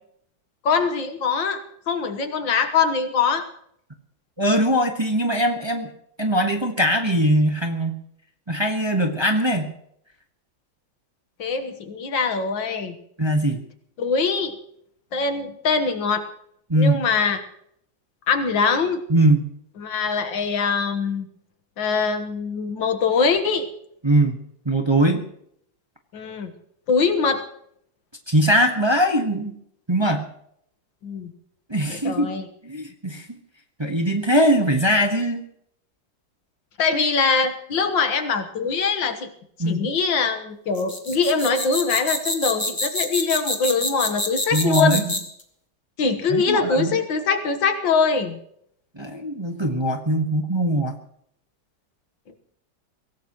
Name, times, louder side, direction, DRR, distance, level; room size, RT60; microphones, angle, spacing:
voice 1, 0.6-1.6 1.9-3.5 11.4-13.0 14.0-14.5 15.1-16.3 16.8-17.4 18.3-19.0 19.8-21.3 21.8-23.7 26.1-26.5 26.9-27.4 31.0-31.3 31.9-32.5 36.8-39.3 39.6-45.0 46.0-48.4, left 5 dB, 80° left, 8 dB, 2.1 m, -23 dB
voice 2, 4.4-5.9 6.2-8.0 8.5-9.7 13.2-13.6 16.7-17.0 19.1-19.5 24.0-24.4 24.6-25.2 28.3-29.5 29.9-30.3 31.7-32.3 32.6-33.3 33.8-35.4 39.6-39.9 44.5-45.1 46.3-47.0 49.0-51.0, right 1 dB, 15° right, 3 dB, 1.2 m, -21 dB
sound 1, 40.7-45.4, left 1 dB, 10° left, 1.9 m, -26 dB
23.5 x 17.5 x 3.1 m, 0.70 s
omnidirectional pair, 2.0 m